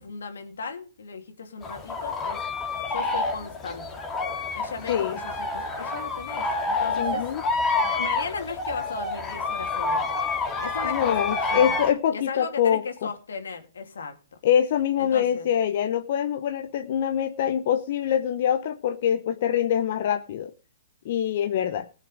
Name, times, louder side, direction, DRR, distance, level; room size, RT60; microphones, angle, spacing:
voice 1, 0.0-2.4 2.9-4.0 4.5-7.2 7.5-10.1 10.6-11.7 12.1-14.2 15.0-15.5, left 5 dB, 75° left, 2.6 m, -36 dB
sound 1, 1.6-11.9, left 3 dB, 20° left, 2.3 m, -28 dB
voice 2, 4.9-5.2 7.0-7.4 10.8-13.1 14.4-20.5 21.0-21.9, left 9 dB, 50° left, 0.9 m, -24 dB
19.0 x 6.4 x 4.9 m
hypercardioid pair, 130°, 0 cm